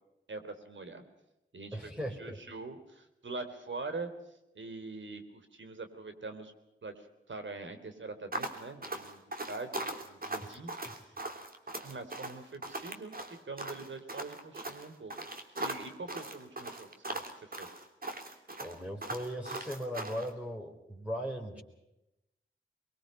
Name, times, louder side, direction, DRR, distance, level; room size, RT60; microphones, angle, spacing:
voice 1, 0.3-1.0 1.5-1.9 2.2-4.1 4.6-6.5 6.8-9.2 9.5-10.7 11.0-11.1 11.8-13.1 13.4-15.1 15.6-17.2 17.5-17.7, right 3 dB, 70° right, 8 dB, 3.5 m, -43 dB
voice 2, 1.7-2.4 10.5-10.6 10.9-11.0 18.6-21.6, equal, 5° right, -1 dB, 4.3 m, -38 dB
sound 1, 8.3-20.3, right 2 dB, 45° right, 3.2 m, -39 dB
23.5 x 22.5 x 5.6 m, 0.91 s
cardioid pair, 65°, 20 cm